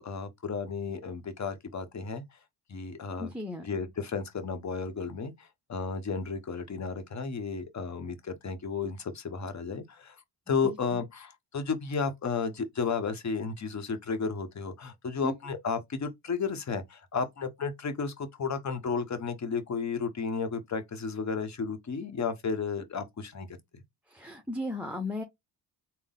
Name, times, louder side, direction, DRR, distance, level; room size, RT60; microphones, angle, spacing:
voice 1, 0.0-2.2 2.7-3.3 3.6-10.2 10.5-23.5, left 5 dB, 40° left, 1.0 m, -33 dB
voice 2, 3.2-3.7 10.6-11.0 15.2-15.3 24.1-25.2, left 2 dB, 5° right, 0.7 m, -36 dB
3.8 x 2.1 x 3.7 m
cardioid pair, 70°, 44 cm